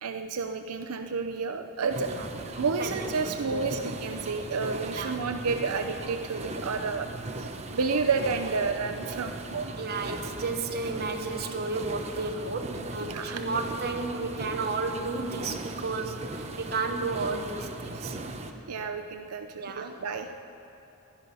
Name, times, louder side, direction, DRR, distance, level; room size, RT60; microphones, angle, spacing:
voice 1, 0.0-7.1 7.7-9.8 13.0-13.4 17.9-18.4 18.7-20.4, right 4 dB, 90° right, 7 dB, 0.6 m, -31 dB
sound 1, 1.9-18.5, right 2 dB, 30° right, 0.9 m, -38 dB
voice 2, 2.8-3.8 5.0-5.1 9.7-18.2 19.5-19.9, right 3 dB, 45° right, 4 dB, 1.2 m, -33 dB
17.5 x 12.0 x 5.5 m, 2.9 s
head